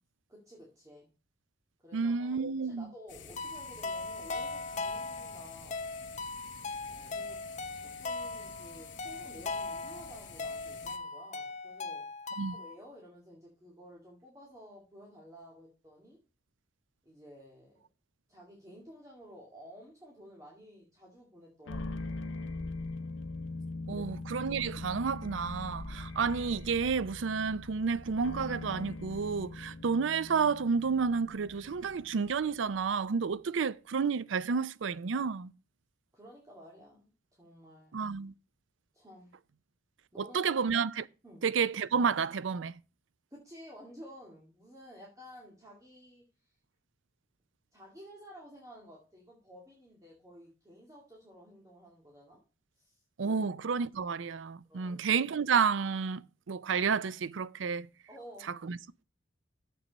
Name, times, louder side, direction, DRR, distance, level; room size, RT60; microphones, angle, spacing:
voice 1, 0.3-1.1 1.8-5.9 6.9-12.1 12.5-16.2 17.0-17.8 18.3-22.3 23.9-24.1 36.1-38.0 38.9-39.3 40.1-40.5 41.2-41.4 43.3-46.5 47.7-52.4 52.7-53.4 54.7-55.0 58.1-58.5, equal, 15° right, 2.3 m, -53 dB
voice 2, 1.9-2.9 12.4-12.6 23.9-35.5 37.9-38.3 40.2-41.1 41.4-42.8 53.2-57.9 58.6-58.8, right 5 dB, 75° right, 0.5 m, -30 dB
sound 1, 3.1-11.0, left 6 dB, 65° left, 1.3 m, -50 dB
Short Lullaby Song, 3.4-12.7, left 3 dB, 40° left, 0.9 m, -39 dB
sound 2, 21.7-33.0, left 2 dB, 85° left, 0.8 m, -42 dB
7.5 x 6.8 x 5.3 m
head